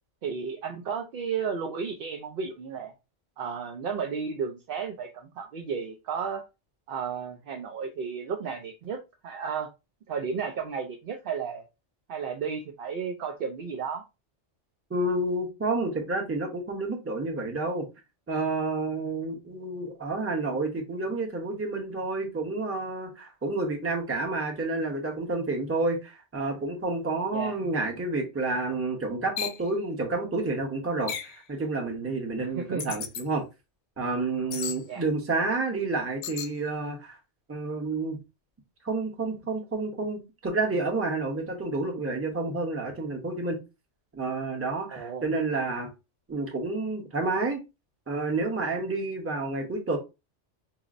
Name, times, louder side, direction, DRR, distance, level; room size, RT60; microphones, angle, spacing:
voice 1, 0.2-2.9 3.4-6.4 6.9-9.7 10.1-11.6 12.1-14.0 27.3-27.6 32.5-33.0 34.9-35.0 44.9-45.2, right 6 dB, 60° right, 0.7 m, -33 dB
voice 2, 14.9-17.8 18.3-33.4 34.0-37.2 37.5-38.2 38.8-43.6 44.1-45.9 46.3-47.6 48.1-50.0, right 3 dB, 15° right, 0.7 m, -29 dB
sound 1, 29.4-29.6 31.1-31.4 32.8-33.2 34.5-34.8 36.2-36.5, left 8 dB, 80° left, 0.9 m, -34 dB
5.7 x 2.0 x 2.5 m
omnidirectional pair, 1.2 m